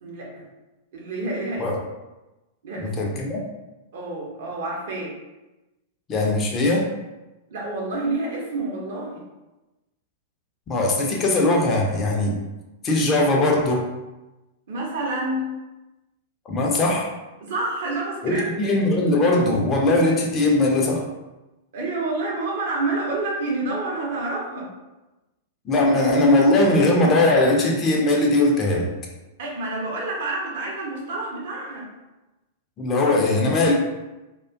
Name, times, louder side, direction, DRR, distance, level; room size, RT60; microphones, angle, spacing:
voice 1, 0.0-0.4 0.9-1.7 2.6-3.0 3.9-5.1 7.5-9.2 14.7-15.5 17.4-18.7 21.7-24.7 29.4-31.9, right 2 dB, 55° right, -2 dB, 0.6 m, -28 dB
voice 2, 2.8-3.4 6.1-6.9 10.7-12.3 12.8-13.9 16.5-17.1 18.2-21.1 25.7-28.9 32.8-33.7, left 2 dB, 25° left, -1 dB, 0.4 m, -20 dB
2.4 x 2.2 x 2.4 m, 1.0 s
figure-of-eight pair, 95°, 0 cm